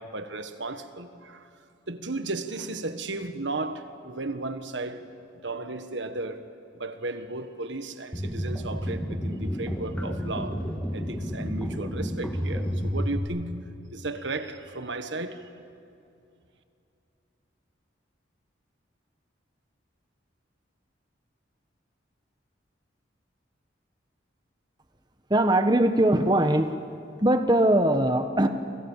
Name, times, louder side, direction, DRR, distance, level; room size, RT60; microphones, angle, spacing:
voice 1, 0.0-1.5 1.9-5.1 5.4-6.5 6.7-10.6 10.9-13.6 13.9-15.5, right 2 dB, 70° right, 1.5 m, -34 dB
sound 1, 8.1-13.2, equal, 10° left, 2.2 m, -30 dB
voice 2, 25.3-26.8 27.2-28.5, right 1 dB, 20° right, 1.1 m, -21 dB
29.5 x 26.5 x 7.4 m
head